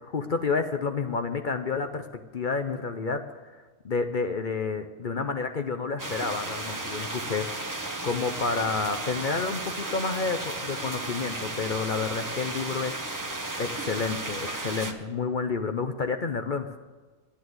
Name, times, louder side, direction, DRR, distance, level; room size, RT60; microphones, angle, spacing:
voice 1, 0.0-2.1 2.3-3.2 3.8-13.2 13.6-16.8, left 4 dB, 50° left, 7 dB, 0.7 m, -30 dB
sound 1, 6.0-14.9, right 2 dB, 15° right, 0.8 m, -34 dB
10.5 x 10.0 x 7.9 m, 1.3 s
omnidirectional pair, 1.5 m